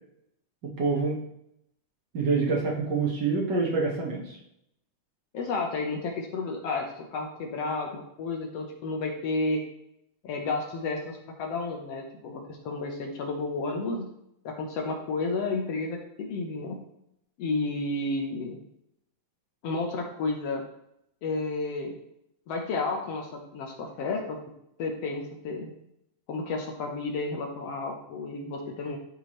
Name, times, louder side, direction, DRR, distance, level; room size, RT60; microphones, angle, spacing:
voice 1, 0.8-1.2 2.1-4.4, right 4 dB, 50° right, -2 dB, 1.4 m, -26 dB
voice 2, 5.3-9.6 10.2-14.1 14.4-16.8 17.4-18.6 19.6-20.6 21.2-22.0 22.5-24.4 24.8-25.7 26.3-29.0, left 3 dB, 65° left, 1 dB, 1.6 m, -31 dB
13.0 x 4.7 x 3.1 m, 0.79 s
omnidirectional pair, 3.7 m